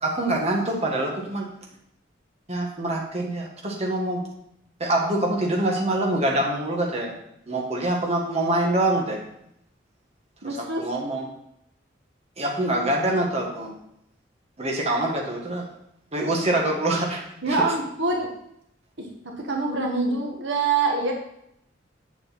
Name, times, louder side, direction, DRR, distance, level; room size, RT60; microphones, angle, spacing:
voice 1, 0.0-1.5 2.5-4.2 4.8-7.1 7.5-9.2 10.4-11.3 12.4-13.7 14.6-15.7 16.1-17.2 17.5-17.7, right 1 dB, 35° right, -1 dB, 1.6 m, -25 dB
voice 2, 10.4-10.8 17.4-18.3 19.0-19.1 19.4-21.1, right 3 dB, 70° right, 1 dB, 1.4 m, -25 dB
8.1 x 7.4 x 4.2 m, 0.76 s
head